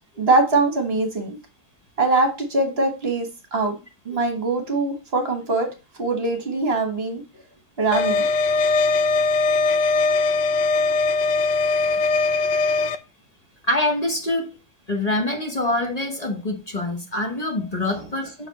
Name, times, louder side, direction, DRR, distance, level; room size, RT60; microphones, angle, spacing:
voice 1, 0.2-1.4 2.0-3.3 3.5-3.8 4.0-5.7 6.0-7.2 7.8-8.2, right 3 dB, 35° right, 1.5 m, -22 dB
sound 1, 7.9-13.0, left 3 dB, 80° left, 1.3 m, -20 dB
voice 2, 13.6-14.5 14.9-18.5, left 1 dB, 30° left, 0.8 m, -25 dB
6.2 x 4.2 x 4.1 m
omnidirectional pair, 1.9 m